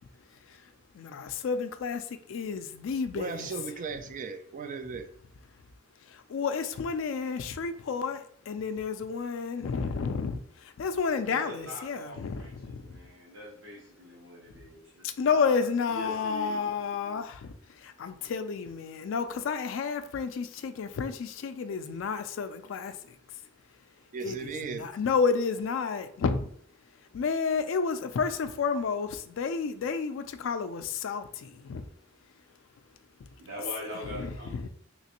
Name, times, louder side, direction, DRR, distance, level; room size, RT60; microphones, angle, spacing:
voice 1, 0.4-3.5 6.0-13.0 15.0-23.4 24.2-26.5 27.1-31.9 33.9-34.7, left 5 dB, 70° left, 0.3 m, -31 dB
voice 2, 3.1-5.1 24.1-24.9, right 5 dB, 40° right, 0.3 m, -36 dB
voice 3, 11.3-12.5 12.8-15.0 15.3-15.4 15.9-16.6 33.4-34.7, equal, 80° right, 0.9 m, -42 dB
3.3 x 3.0 x 2.9 m
head